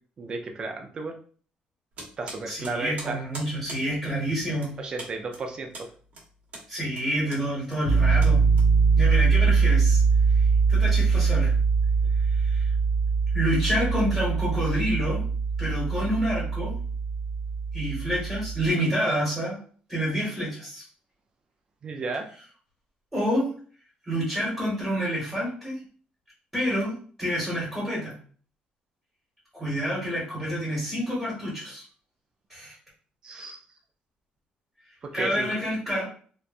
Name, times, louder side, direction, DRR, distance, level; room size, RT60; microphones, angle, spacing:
voice 1, 0.2-1.1 2.2-3.2 4.8-5.9 21.8-22.3 33.2-33.6 35.0-35.6, right 3 dB, 30° right, 4 dB, 0.4 m, -33 dB
sound 1, 1.9-9.1, right 2 dB, 55° right, 1.0 m, -44 dB
voice 2, 2.5-4.7 6.7-8.4 9.0-10.0 10.7-11.5 12.4-12.7 13.3-15.2 15.6-16.8 17.7-19.6 19.9-20.8 23.1-23.5 24.1-25.8 26.5-28.1 29.5-31.8 32.5-32.7 35.1-36.0, equal, 5° right, -7 dB, 1.3 m, -28 dB
Piano, 7.8-18.7, right 5 dB, 65° left, 0.5 m, -22 dB
2.9 x 2.2 x 2.5 m, 0.43 s
cardioid pair, 165°, 3 cm